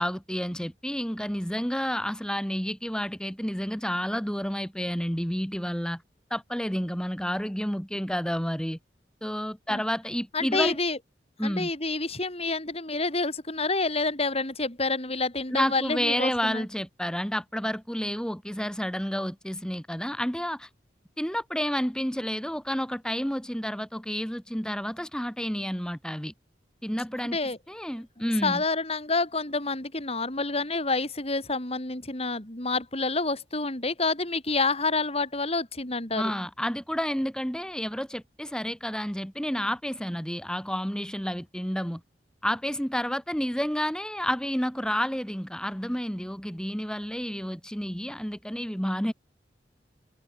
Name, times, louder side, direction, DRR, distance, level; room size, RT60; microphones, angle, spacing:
voice 1, 0.0-6.0 6.3-8.8 9.2-10.8 11.4-11.7 15.5-20.7 21.2-26.3 26.8-27.4 27.7-28.6 36.1-42.0 42.4-49.1, equal, 5° left, 4.0 m, -30 dB
voice 2, 10.3-11.0 11.4-16.7 27.3-27.6 28.2-36.3, left 3 dB, 35° left, 5.7 m, -28 dB
head